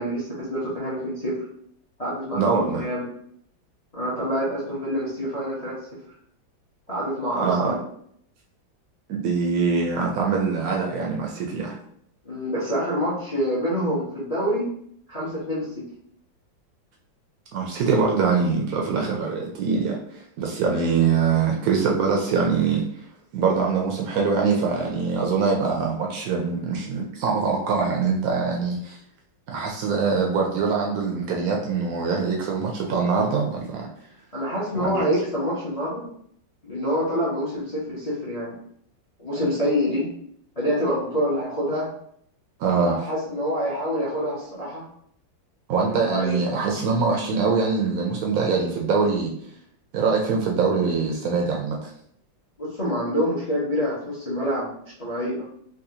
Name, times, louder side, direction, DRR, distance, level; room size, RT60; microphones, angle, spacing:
voice 1, 0.0-1.3 2.0-3.1 3.9-5.7 6.9-7.8 12.2-14.6 15.1-15.8 34.3-36.1 36.6-38.6 39.2-40.1 40.6-41.9 42.8-44.9 45.8-46.4 52.6-55.5, equal, 70° left, -8 dB, 0.3 m, -26 dB
voice 2, 2.3-2.8 7.3-7.8 9.1-11.7 17.5-20.0 20.4-22.8 23.3-29.0 29.5-33.9 34.7-35.0 42.6-43.0 45.7-49.3 49.9-51.9, right 5 dB, 85° right, 0 dB, 0.8 m, -23 dB
3.9 x 2.3 x 2.7 m, 0.67 s
omnidirectional pair, 2.2 m